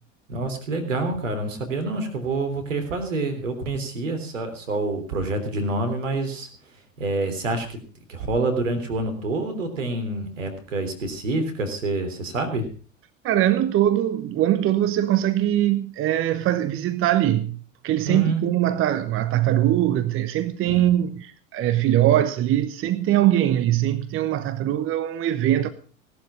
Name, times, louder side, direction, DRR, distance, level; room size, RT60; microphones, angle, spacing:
voice 1, 0.3-6.5 7.0-7.8 8.1-12.7 18.1-18.4 20.7-20.9, right 2 dB, 75° right, 3.5 m, -27 dB
voice 2, 13.2-17.6 17.8-25.7, right 12 dB, 35° right, 1.0 m, -22 dB
17.5 x 12.0 x 5.0 m
figure-of-eight pair, 80°, 39 cm